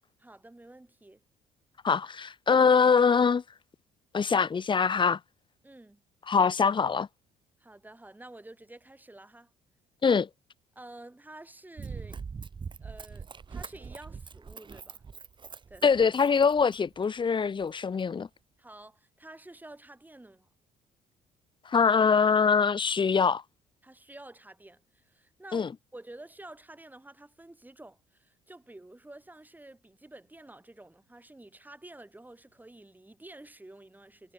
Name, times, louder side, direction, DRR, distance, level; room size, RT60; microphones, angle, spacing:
voice 1, 0.2-1.2 5.6-6.0 7.6-9.5 10.8-12.2 12.8-15.0 15.7-16.1 18.6-20.5 23.8-34.3, right 1 dB, 10° right, 7.7 m, -50 dB
voice 2, 1.8-3.4 4.1-5.2 6.3-7.1 10.0-10.3 15.8-18.3 21.7-23.4 25.5-25.7, left 5 dB, 35° left, 1.1 m, -23 dB
Run, 11.8-17.0 17.6-17.7, right 5 dB, 35° right, 1.4 m, -43 dB
supercardioid pair, 70°, 15 cm